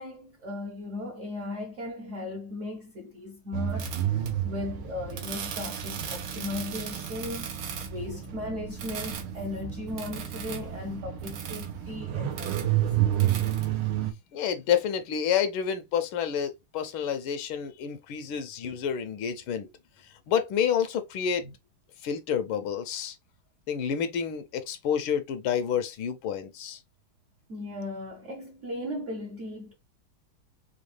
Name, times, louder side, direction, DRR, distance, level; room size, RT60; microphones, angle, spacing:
voice 1, 0.0-3.9 4.4-7.5 7.8-12.8 21.4-21.5 27.5-29.7, left 2 dB, 60° right, 0.8 m, -37 dB
sound 1, 3.5-14.1, right 11 dB, 90° right, 1.7 m, -31 dB
voice 2, 14.3-19.7 20.3-21.5 22.0-23.1 23.7-26.8, left 8 dB, 80° left, 1.5 m, -29 dB
5.0 x 2.3 x 3.2 m
omnidirectional pair, 2.3 m